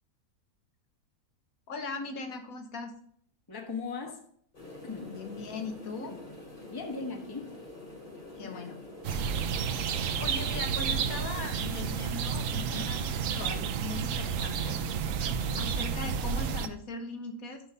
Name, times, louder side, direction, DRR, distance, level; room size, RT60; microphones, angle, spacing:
voice 1, 1.7-2.9 5.1-6.2 8.4-8.8 10.2-14.8 15.6-17.6, left 3 dB, 70° left, 5 dB, 1.5 m, -39 dB
voice 2, 3.5-4.2 4.8-5.2 6.1-6.2 6.7-7.5 8.4-8.7, left 4 dB, 15° left, 3 dB, 1.0 m, -38 dB
sound 1, 4.5-11.1, left 2 dB, 35° left, 3.4 m, -46 dB
sound 2, 9.0-16.7, right 6 dB, 70° right, 1.0 m, -31 dB
6.3 x 5.5 x 5.5 m, 0.63 s
omnidirectional pair, 1.6 m